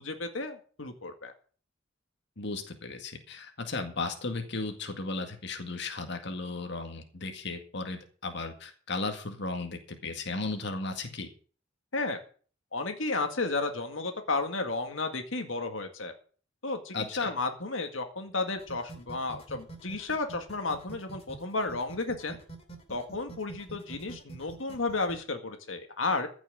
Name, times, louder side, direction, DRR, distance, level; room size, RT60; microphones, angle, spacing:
voice 1, 0.0-1.3 11.9-12.2 12.7-16.1 16.6-22.4 22.9-26.3, left 3 dB, 85° left, 6 dB, 1.9 m, -33 dB
voice 2, 2.4-11.3 16.9-17.3, left 3 dB, 65° left, 5 dB, 2.0 m, -35 dB
sound 1, 18.6-25.2, right 3 dB, 30° left, 2.8 m, -46 dB
15.0 x 6.3 x 7.7 m, 0.42 s
head